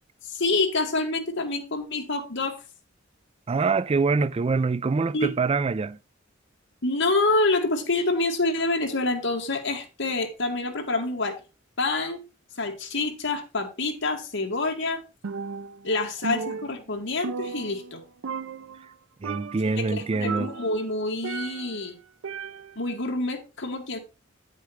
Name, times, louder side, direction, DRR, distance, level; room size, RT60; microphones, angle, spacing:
voice 1, 0.3-2.6 5.1-5.3 6.8-11.4 11.8-12.2 12.6-15.0 15.8-18.0 19.7-21.9 22.8-24.0, left 2 dB, 65° left, 2.1 m, -27 dB
voice 2, 3.5-6.0 19.2-20.5, right 4 dB, 30° right, 0.4 m, -25 dB
Percussion, 15.2-15.9 16.2-18.0 18.2-18.9 19.2-19.7 20.2-21.8 22.2-22.9, right 5 dB, 80° right, 0.5 m, -35 dB
9.4 x 8.2 x 3.2 m
head